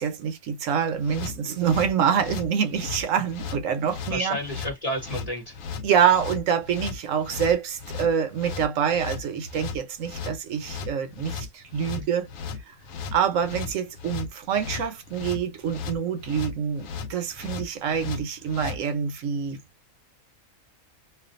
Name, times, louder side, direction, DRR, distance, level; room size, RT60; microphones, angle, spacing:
voice 1, 0.0-4.4 5.8-12.3 12.7-12.8 13.1-19.6, right 7 dB, 75° right, 1.1 m, -26 dB
sound 1, 1.0-18.8, left 5 dB, 80° left, 1.0 m, -36 dB
voice 2, 4.1-5.6 11.9-12.1, equal, 40° left, 0.6 m, -31 dB
2.5 x 2.4 x 2.4 m
omnidirectional pair, 1.4 m